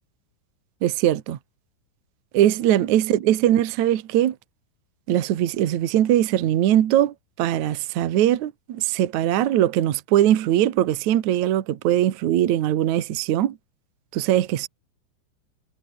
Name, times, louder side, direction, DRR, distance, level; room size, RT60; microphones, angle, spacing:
voice 1, 0.8-1.4 2.3-4.3 5.1-13.6 14.1-14.7, right 12 dB, 80° right, 1.6 m, -21 dB
omnidirectional pair, 5.8 m